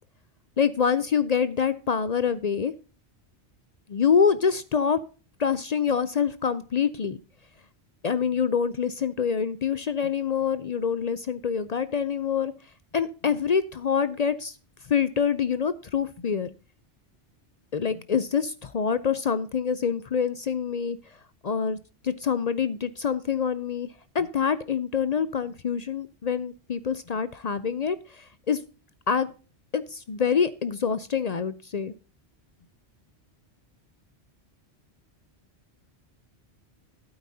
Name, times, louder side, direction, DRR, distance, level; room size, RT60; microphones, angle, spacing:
voice 1, 0.6-2.7 3.9-5.0 5.4-7.2 8.0-12.5 12.9-14.5 14.9-16.5 17.7-21.0 21.4-21.8 22.0-23.9 24.1-28.0 28.5-28.6 29.1-29.3 29.7-31.9, left 6 dB, 50° left, 14 dB, 0.5 m, -26 dB
12.0 x 8.8 x 2.7 m, 0.35 s
omnidirectional pair, 1.1 m